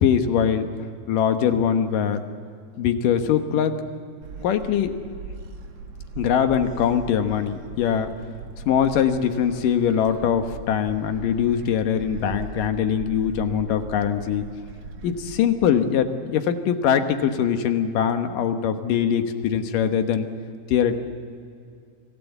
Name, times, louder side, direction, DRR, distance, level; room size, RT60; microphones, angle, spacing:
voice 1, 0.0-0.7 1.1-2.2 2.8-3.7 4.4-5.0 6.2-8.1 8.6-14.5 15.0-20.3 20.7-21.0, left 8 dB, 75° left, 7 dB, 2.8 m, -22 dB
Gull seagull, 4.2-15.4, right 4 dB, 50° right, 2.6 m, -39 dB
25.5 x 17.0 x 8.2 m, 2.3 s
omnidirectional pair, 3.9 m